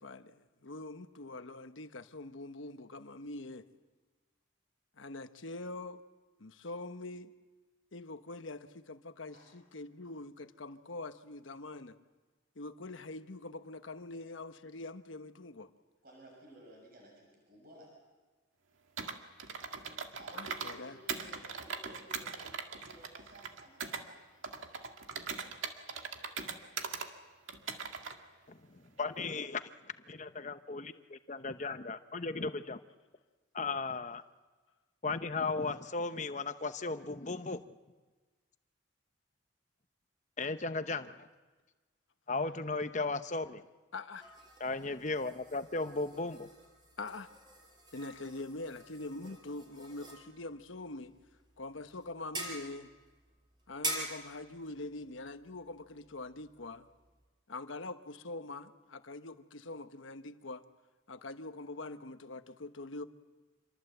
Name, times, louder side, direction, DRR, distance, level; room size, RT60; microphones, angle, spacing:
voice 1, 0.0-3.7 5.0-6.0 6.4-7.3 7.9-12.0 12.5-15.7 20.3-21.0 43.9-44.4 47.0-47.4 47.9-51.2 51.6-52.9 53.7-56.9 57.5-60.6 61.1-63.0, left 2 dB, 80° left, 1.1 m, -44 dB
voice 2, 16.0-18.0 20.2-24.2, right 1 dB, 50° right, 6.8 m, -56 dB
Computer keyboard, 19.0-20.8 21.1-24.0 24.4-27.1 27.5-28.2, right 5 dB, 85° right, 1.9 m, -40 dB
voice 3, 28.5-29.6 30.1-30.9 31.3-32.8 33.5-34.2 35.0-37.6 40.4-41.3 42.3-43.6 44.6-46.5, left 3 dB, 35° left, 0.9 m, -36 dB
sound 1, 44.2-57.3, right 2 dB, 25° right, 5.1 m, -46 dB
27.0 x 22.5 x 8.0 m
head